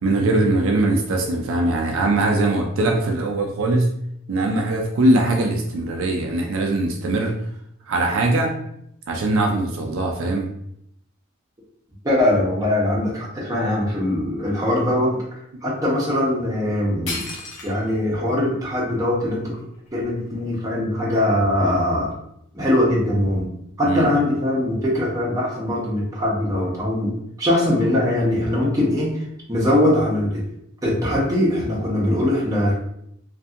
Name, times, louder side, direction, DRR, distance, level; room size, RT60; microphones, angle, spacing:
voice 1, 0.0-4.0 4.3-7.3 7.9-8.5 9.1-10.5 23.8-24.1, right 2 dB, 70° right, 2 dB, 0.4 m, -21 dB
voice 2, 12.0-15.2 15.6-17.3 17.6-19.6 19.9-22.1 22.5-23.5 23.8-29.2 29.5-30.4 30.8-32.8, left 1 dB, 15° right, -6 dB, 0.7 m, -21 dB
sound 1, 16.7-16.8 17.1-18.0 18.6-18.7 19.3-20.6, left 3 dB, 90° left, 0.8 m, -34 dB
2.6 x 2.6 x 2.4 m, 0.75 s
head